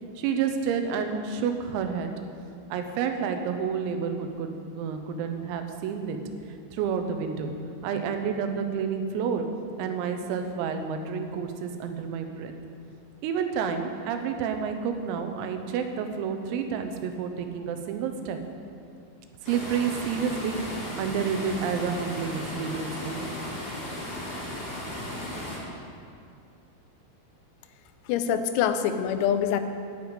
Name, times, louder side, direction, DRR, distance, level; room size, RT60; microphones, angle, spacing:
voice 1, 0.2-2.1 2.7-6.2 6.7-7.6 7.8-9.5 9.8-12.5 13.2-18.4 19.4-23.3, right 6 dB, 90° right, 6 dB, 3.7 m, -29 dB
sound 1, 19.4-25.6, left 1 dB, 30° left, 4.1 m, -35 dB
voice 2, 28.1-29.6, left 9 dB, 90° left, 8 dB, 3.5 m, -25 dB
10.5 x 9.6 x 8.9 m, 2.5 s
omnidirectional pair, 5.9 m